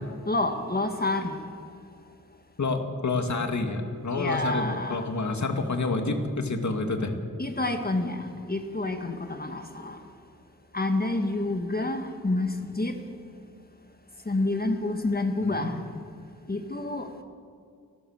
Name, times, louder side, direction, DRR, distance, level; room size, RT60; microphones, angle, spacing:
voice 1, 0.3-1.4 4.2-5.0 7.4-10.0 10.7-12.9 14.3-15.7 16.5-17.2, left 2 dB, 25° left, 6 dB, 1.7 m, -28 dB
voice 2, 2.6-7.1 15.4-15.7, left 3 dB, 55° left, 5 dB, 2.5 m, -28 dB
29.5 x 13.0 x 6.7 m, 2.2 s
wide cardioid pair, 75°, 34 cm